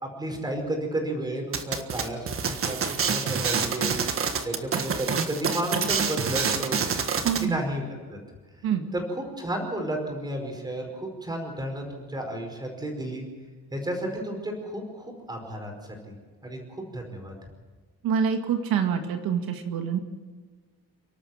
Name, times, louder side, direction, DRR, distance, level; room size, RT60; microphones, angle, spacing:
voice 1, 0.0-3.9 4.4-6.8 7.1-8.2 8.9-13.2 13.7-15.7 16.1-16.2 16.4-17.3, right 1 dB, 10° right, 2 dB, 5.1 m, -32 dB
sound 1, 1.5-7.5, right 6 dB, 40° right, 1.6 m, -27 dB
voice 2, 7.2-7.6 8.6-8.9 18.0-20.0, right 7 dB, 80° right, 5 dB, 2.2 m, -26 dB
30.0 x 12.5 x 7.5 m, 1.4 s
cardioid pair, 170°, 35 cm